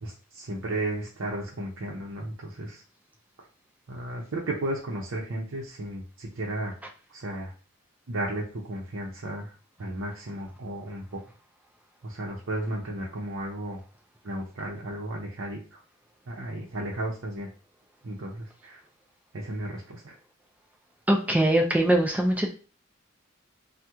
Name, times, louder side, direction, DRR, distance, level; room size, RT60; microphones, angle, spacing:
voice 1, 0.0-2.8 3.9-6.7 7.1-7.5 8.1-9.5 9.8-11.2 12.0-13.8 14.2-15.8 16.3-17.5 18.0-18.8 19.3-20.2, right 1 dB, 65° right, -3 dB, 0.6 m, -34 dB
voice 2, 21.1-22.5, right 1 dB, 5° right, 1 dB, 0.3 m, -22 dB
2.9 x 2.1 x 3.5 m, 0.37 s
head